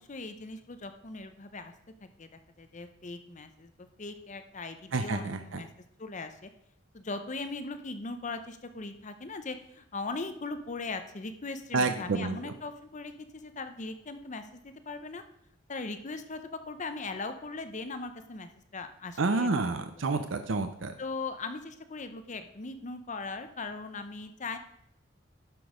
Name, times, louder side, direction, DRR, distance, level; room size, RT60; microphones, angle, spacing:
voice 1, 0.0-1.7 2.2-3.7 4.0-5.7 6.0-6.5 6.9-15.2 15.7-19.7 21.0-24.6, left 3 dB, 40° left, 9 dB, 0.7 m, -39 dB
voice 2, 4.9-5.6 11.7-12.4 19.2-20.9, right 3 dB, 70° right, 8 dB, 0.6 m, -29 dB
11.5 x 6.2 x 5.0 m, 0.73 s
head